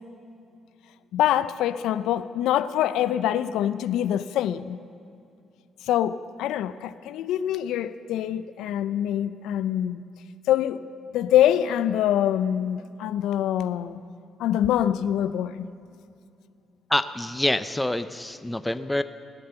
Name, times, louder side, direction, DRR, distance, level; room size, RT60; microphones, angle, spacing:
voice 1, 1.1-4.8 5.9-10.0 10.5-10.8 11.1-14.0 14.4-15.7, left 11 dB, 90° left, 14 dB, 0.4 m, -24 dB
voice 2, 16.9-19.0, left 1 dB, 10° left, 12 dB, 0.5 m, -26 dB
16.5 x 10.5 x 6.9 m, 2.5 s
cardioid pair, 90°, 0 cm